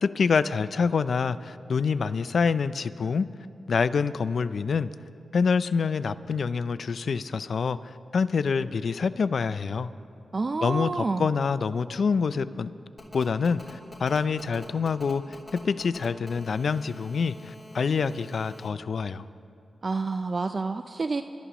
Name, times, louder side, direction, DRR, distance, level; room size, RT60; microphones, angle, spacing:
voice 1, 0.0-3.3 3.7-4.9 5.3-9.9 10.6-12.7 13.1-15.2 15.6-19.3, left 5 dB, 70° left, 15 dB, 0.4 m, -26 dB
voice 2, 10.3-11.3 19.8-21.2, right 3 dB, 45° right, 9 dB, 0.4 m, -28 dB
Telephone, 13.0-18.7, left 1 dB, 35° left, 2.9 m, -45 dB
26.5 x 12.5 x 3.0 m, 2.6 s
cardioid pair, 50°, 0 cm